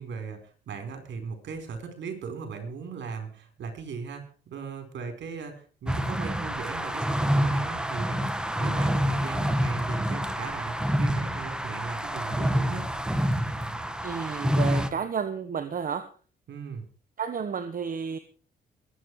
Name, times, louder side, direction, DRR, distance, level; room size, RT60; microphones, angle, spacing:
voice 1, 0.0-12.9 16.5-16.8, right 5 dB, 65° right, 7 dB, 4.6 m, -38 dB
sound 1, 5.9-14.9, equal, 5° right, 1.8 m, -27 dB
voice 2, 14.0-16.1 17.2-18.2, right 6 dB, 45° right, 10 dB, 1.3 m, -31 dB
21.5 x 9.2 x 4.9 m, 0.39 s
cardioid pair, 90°, 20 cm